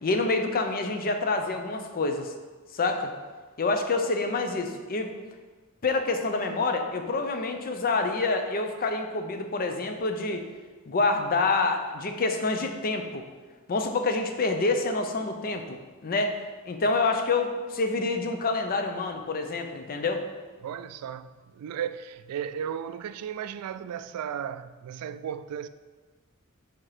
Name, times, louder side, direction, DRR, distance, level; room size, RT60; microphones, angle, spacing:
voice 1, 0.0-2.3 2.7-3.1 3.6-5.1 5.8-10.4 10.9-13.2 13.7-16.4 16.7-20.2, left 3 dB, 40° left, 0.6 m, -27 dB
voice 2, 20.6-25.7, right 8 dB, 85° right, 0.3 m, -35 dB
4.9 x 4.4 x 4.8 m
head